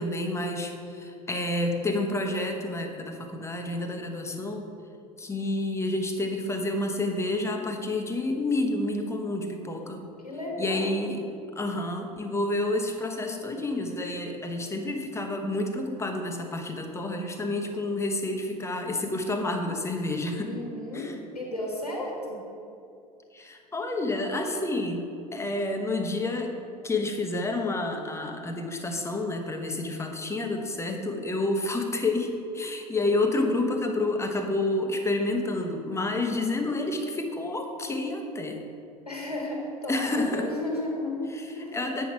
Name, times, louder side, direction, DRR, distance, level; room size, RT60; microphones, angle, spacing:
voice 1, 0.0-4.7 5.2-10.0 10.6-11.2 11.5-20.5 20.9-21.1 23.3-26.5 26.8-38.6 39.9-40.5 41.3-41.4 41.7-42.1, left 2 dB, 15° left, 3 dB, 1.0 m, -29 dB
voice 2, 10.2-11.2 20.4-22.4 39.0-41.2 41.5-41.8, left 1 dB, 90° left, -2 dB, 1.3 m, -34 dB
8.4 x 5.9 x 4.7 m, 2.5 s
figure-of-eight pair, 70°, 19 cm